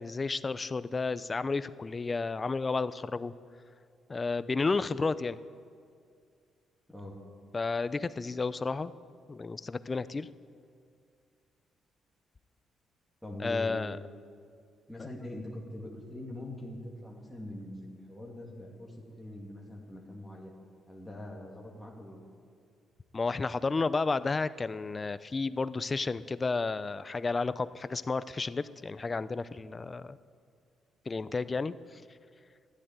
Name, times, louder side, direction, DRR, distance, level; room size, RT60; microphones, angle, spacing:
voice 1, 0.0-3.3 4.1-5.4 7.5-8.9 9.3-10.3 13.4-14.0 23.1-30.2 31.1-32.0, left 4 dB, 30° left, 15 dB, 0.5 m, -32 dB
voice 2, 13.2-14.1 14.9-20.5 20.9-22.2, left 1 dB, ahead, -3 dB, 2.5 m, -43 dB
13.0 x 10.5 x 9.2 m, 2.3 s
cardioid pair, 90°, 0 cm